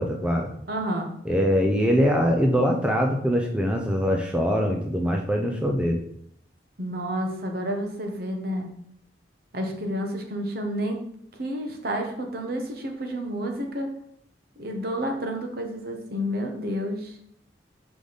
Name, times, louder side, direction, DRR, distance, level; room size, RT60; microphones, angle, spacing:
voice 1, 0.0-0.5 1.2-6.0, equal, 5° right, 1 dB, 0.4 m, -23 dB
voice 2, 0.7-1.1 6.8-8.7 9.5-11.1 11.4-13.9 14.6-17.1, equal, 55° right, 3 dB, 1.0 m, -30 dB
5.1 x 5.0 x 4.0 m, 0.69 s
head